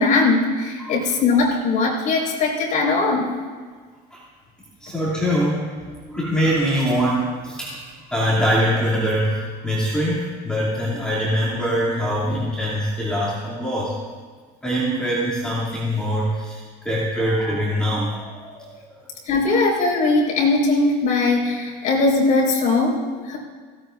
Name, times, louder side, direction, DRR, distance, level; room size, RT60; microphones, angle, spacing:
voice 1, 0.0-3.2 19.2-23.0 23.3-23.4, left 3 dB, 45° left, -2 dB, 4.9 m, -20 dB
voice 2, 4.8-7.8 8.1-13.9 14.6-18.7 19.0-19.1, equal, 5° left, -8 dB, 2.7 m, -23 dB
17.0 x 16.5 x 2.6 m, 1.5 s
cardioid pair, 140°, 18 cm